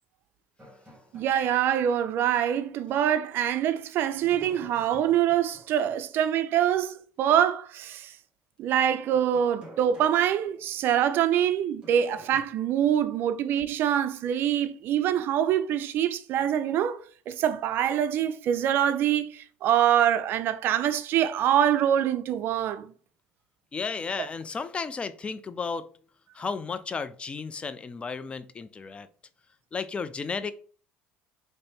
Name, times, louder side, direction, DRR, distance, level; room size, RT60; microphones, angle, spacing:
sound 1, 0.6-2.1 2.4-2.5 4.1-6.1 8.7-11.2 11.8-12.4, equal, 25° right, 1.9 m, -51 dB
voice 1, 1.1-8.1 8.6-17.0 17.3-22.9, right 10 dB, 60° right, 0.4 m, -25 dB
voice 2, 23.7-25.9 26.3-29.1 29.7-30.5, left 5 dB, 25° left, 0.4 m, -33 dB
3.9 x 2.7 x 3.5 m
supercardioid pair, 95°, 4 cm